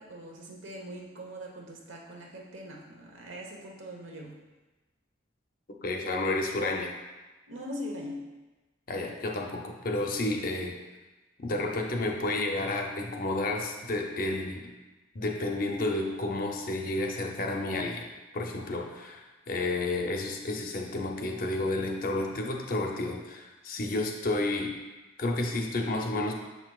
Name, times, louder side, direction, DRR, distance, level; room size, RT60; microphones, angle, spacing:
voice 1, 0.0-4.4 7.5-8.3, equal, 75° right, 0 dB, 1.1 m, -41 dB
voice 2, 5.8-6.9 8.9-10.7 11.4-14.7 15.1-18.1 18.3-24.7 25.2-26.3, left 2 dB, 45° left, 1 dB, 0.6 m, -31 dB
6.9 x 5.9 x 2.4 m, 1.2 s
head